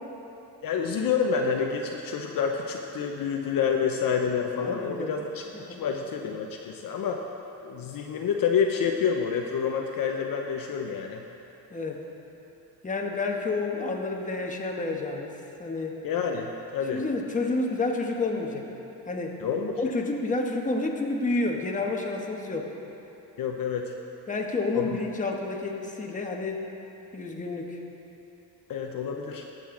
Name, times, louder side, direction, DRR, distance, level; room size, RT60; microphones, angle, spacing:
voice 1, 0.6-5.4 5.8-7.2 7.6-11.2 16.0-17.0 19.4-19.8 23.4-23.9 24.7-24.9 28.7-29.4, left 6 dB, 55° left, 2 dB, 0.8 m, -28 dB
voice 2, 4.6-5.2 5.5-5.8 11.7-12.0 12.8-15.3 15.6-16.0 16.9-18.7 19.1-19.4 19.8-22.7 24.3-26.6 27.1-27.8, left 3 dB, 20° left, 0 dB, 1.2 m, -29 dB
17.5 x 7.9 x 3.8 m, 2.9 s
cardioid pair, 120°, 41 cm